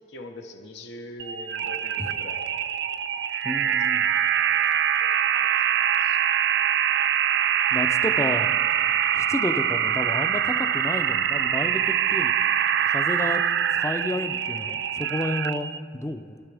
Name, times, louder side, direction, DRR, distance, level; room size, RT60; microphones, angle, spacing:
voice 1, 0.1-2.6 3.6-4.6 5.0-5.5 6.0-6.2, left 1 dB, 65° left, 4 dB, 1.1 m, -43 dB
sound 1, 1.2-15.8, right 9 dB, 65° right, 0.4 m, -24 dB
voice 2, 3.4-4.1 7.7-8.5 9.1-12.3 12.8-13.4 13.7-16.4, left 1 dB, 15° left, 9 dB, 0.6 m, -31 dB
26.5 x 11.5 x 3.5 m, 2.3 s
head